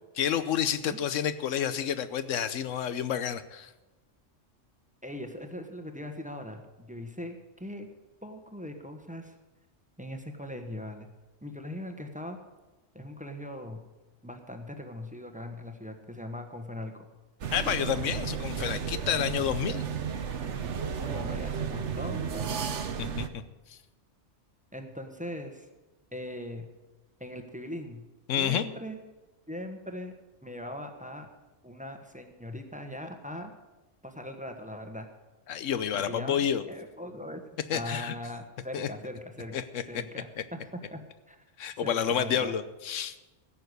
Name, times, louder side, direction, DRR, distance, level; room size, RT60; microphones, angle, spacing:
voice 1, 0.2-3.7 17.5-19.8 23.0-23.4 23.7-23.8 28.3-28.7 35.5-36.6 37.7-38.1 38.7-38.9 39.5-40.0 40.4-40.5 41.6-43.2, left 9 dB, 85° left, 13 dB, 1.1 m, -29 dB
voice 2, 5.0-7.9 8.2-9.3 10.0-11.1 11.4-12.4 12.9-13.8 14.2-17.1 20.8-22.6 24.7-25.7 26.1-26.7 27.2-28.0 28.4-29.0 29.5-30.1 30.4-31.3 31.6-33.5 34.0-35.1 35.9-37.4 37.7-39.6 39.9-41.4 41.8-42.5, left 1 dB, 5° right, 5 dB, 1.2 m, -40 dB
sound 1, 17.4-23.3, right 7 dB, 70° right, 1.2 m, -33 dB
15.5 x 6.9 x 8.1 m, 1.1 s
omnidirectional pair, 1.3 m